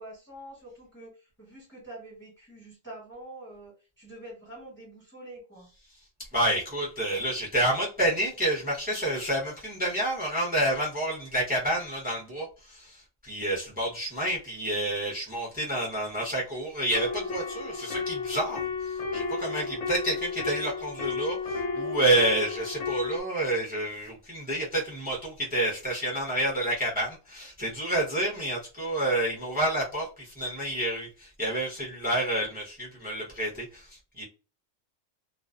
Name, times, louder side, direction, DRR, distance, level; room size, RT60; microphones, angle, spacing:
voice 1, 0.0-5.7, right 1 dB, 10° left, -5 dB, 0.9 m, -46 dB
voice 2, 6.3-34.2, right 1 dB, 10° right, -3 dB, 0.6 m, -29 dB
sound 1, 16.9-23.2, left 4 dB, 70° left, 0.3 m, -33 dB
2.4 x 2.1 x 2.4 m, 0.33 s
omnidirectional pair, 1.3 m